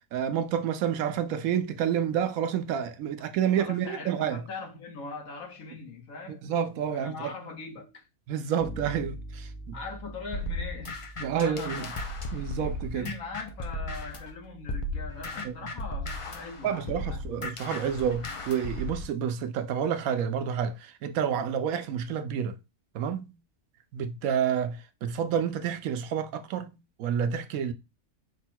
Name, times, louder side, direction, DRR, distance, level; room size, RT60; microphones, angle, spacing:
voice 1, 0.1-4.4 6.4-7.3 8.3-9.8 11.2-11.9 12.3-13.1 15.4-15.5 16.6-22.6 22.9-23.3 23.9-27.7, right 8 dB, 90° right, 1.1 m, -29 dB
voice 2, 3.6-6.4 6.9-8.0 9.7-11.9 12.6-17.2, left 4 dB, 75° left, 1.6 m, -41 dB
Bass guitar, 8.6-18.3, right 1 dB, ahead, 0.7 m, -47 dB
sound 1, 10.3-14.3 14.7-19.1, left 1 dB, 50° left, 0.3 m, -35 dB
5.0 x 2.3 x 4.3 m
omnidirectional pair, 1.4 m